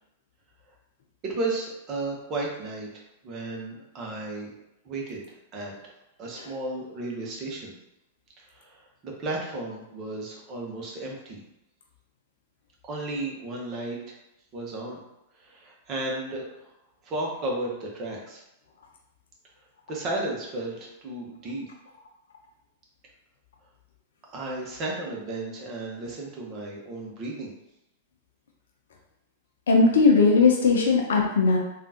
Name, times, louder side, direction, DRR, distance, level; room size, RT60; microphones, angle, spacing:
voice 1, 1.2-2.9 3.2-4.5 4.8-5.7 6.2-7.7 8.5-11.4 12.8-14.0 14.5-15.0 15.4-16.7 17.0-18.4 19.9-21.6 24.3-27.5, right 2 dB, 35° right, -2 dB, 0.9 m, -33 dB
voice 2, 29.7-31.6, left 4 dB, 65° left, 1 dB, 0.7 m, -19 dB
3.6 x 2.4 x 2.8 m, 0.87 s
figure-of-eight pair, 100°, 0 cm